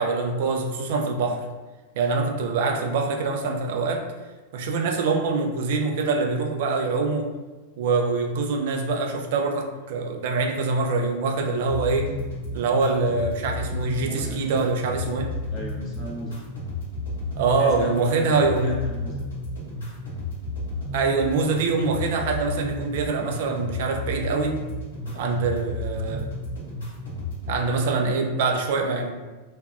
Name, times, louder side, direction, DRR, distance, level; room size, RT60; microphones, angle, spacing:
voice 1, 0.0-1.4 2.0-4.0 4.5-7.3 7.8-12.1 12.5-15.3 17.4-18.8 20.9-24.5 25.1-26.3 27.5-29.1, right 4 dB, 50° right, 2 dB, 0.3 m, -24 dB
sound 1, 11.6-27.6, left 1 dB, 70° left, 1.0 m, -33 dB
voice 2, 14.0-14.4 15.5-16.4 17.6-19.2, left 2 dB, 30° left, -3 dB, 0.5 m, -37 dB
2.5 x 2.2 x 2.2 m, 1.2 s
figure-of-eight pair, 90°, 0 cm